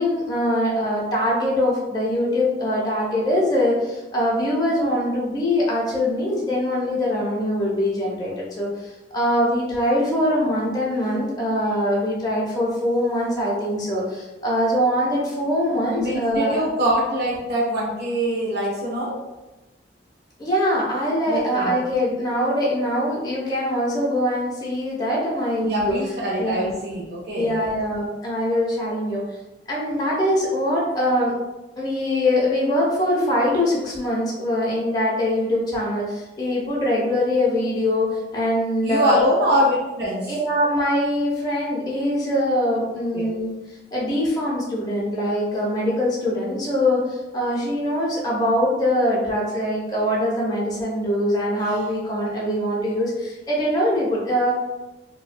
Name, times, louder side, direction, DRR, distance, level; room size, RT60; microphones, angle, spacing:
voice 1, 0.0-16.6 20.4-26.0 26.4-26.7 27.3-29.2 29.7-31.3 31.8-39.2 40.3-43.5 43.9-54.5, left 1 dB, 20° left, -5 dB, 0.5 m, -23 dB
voice 2, 15.9-19.2 21.3-21.8 25.6-27.5 38.8-40.3 43.1-43.3, equal, 60° right, -5 dB, 0.5 m, -23 dB
2.6 x 2.1 x 2.4 m, 1.0 s
head